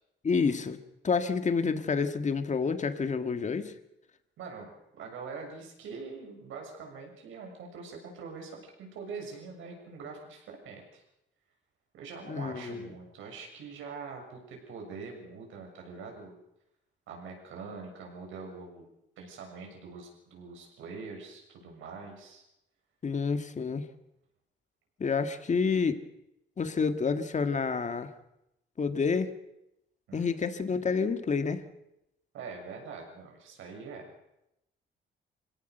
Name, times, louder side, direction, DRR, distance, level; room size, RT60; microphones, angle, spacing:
voice 1, 0.2-0.8 1.0-3.7 12.3-12.9 23.0-23.9 25.0-26.0 26.6-28.1 28.8-29.3 30.1-31.6, left 5 dB, 35° left, 9 dB, 1.9 m, -29 dB
voice 2, 4.4-11.0 11.9-16.4 17.1-18.9 19.2-22.4 30.1-30.3 32.3-34.1, right 4 dB, 85° right, 2 dB, 6.9 m, -44 dB
24.0 x 17.5 x 6.8 m, 0.85 s
cardioid pair, 90°, 20 cm